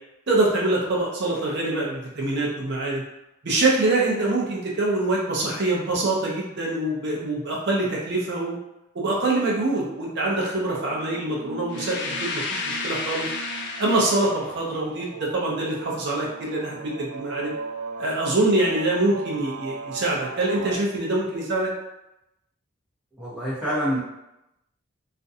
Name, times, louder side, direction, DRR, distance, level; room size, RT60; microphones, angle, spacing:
voice 1, 0.3-3.0 3.4-8.6 8.9-13.3 13.8-17.5 18.0-21.7, right 2 dB, 55° right, -4 dB, 0.6 m, -24 dB
sound 1, 10.4-20.8, right 5 dB, 90° right, 0.3 m, -39 dB
sound 2, 11.7-14.5, left 4 dB, 55° left, 0.3 m, -31 dB
voice 2, 23.2-24.0, equal, 5° right, -11 dB, 0.8 m, -26 dB
2.4 x 2.2 x 2.7 m, 0.89 s
head